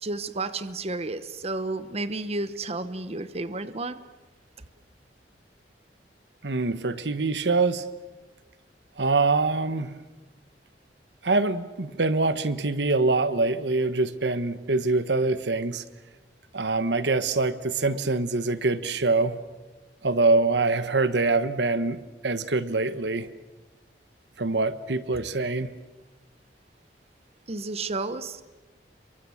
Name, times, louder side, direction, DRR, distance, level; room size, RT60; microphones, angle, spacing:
voice 1, 0.0-4.0 27.5-28.4, right 2 dB, 35° right, 13 dB, 1.0 m, -31 dB
voice 2, 6.4-7.8 9.0-9.9 11.2-15.8 16.5-19.4 20.0-23.3 24.4-25.7, right 3 dB, 75° right, 13 dB, 1.2 m, -24 dB
29.5 x 23.0 x 7.2 m, 1.2 s
head